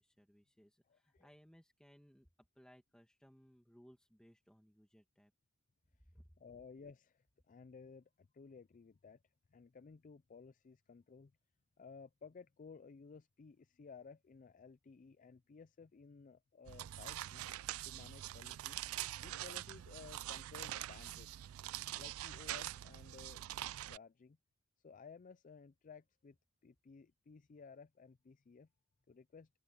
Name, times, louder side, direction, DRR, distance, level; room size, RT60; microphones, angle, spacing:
voice 1, 0.0-2.3 2.6-5.3 6.1-6.4, equal, 5° left, 1.9 m, -64 dB
voice 2, 0.9-1.3 6.4-9.2 9.5-11.3 11.8-17.4 17.8-18.8 19.2-21.3 21.9-23.4 23.8-24.4 24.8-26.4 26.6-28.7 29.1-29.5, left 5 dB, 35° left, 0.4 m, -56 dB
sound 1, 16.7-24.0, right 14 dB, 70° right, 0.3 m, -44 dB
open air
head